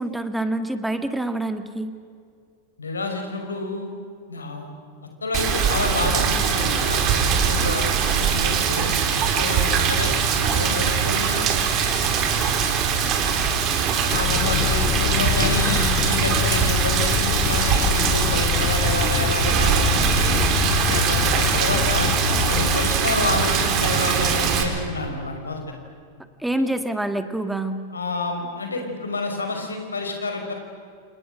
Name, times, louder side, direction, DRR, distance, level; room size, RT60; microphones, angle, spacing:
voice 1, 0.0-1.9 26.4-27.8, right 1 dB, 5° right, 9 dB, 2.0 m, -26 dB
voice 2, 2.8-3.9 4.3-4.7 5.2-8.9 9.3-10.1 10.5-11.5 14.1-20.4 20.9-22.1 22.5-25.6 26.5-26.7 27.9-30.5, left 3 dB, 75° left, 4 dB, 5.1 m, -29 dB
Rain, 5.3-24.6, right 6 dB, 35° right, 4.1 m, -22 dB
sound 1, 14.1-22.9, left 19 dB, 40° left, 0.6 m, -26 dB
29.0 x 28.5 x 6.4 m, 2.2 s
figure-of-eight pair, 90°, 0 cm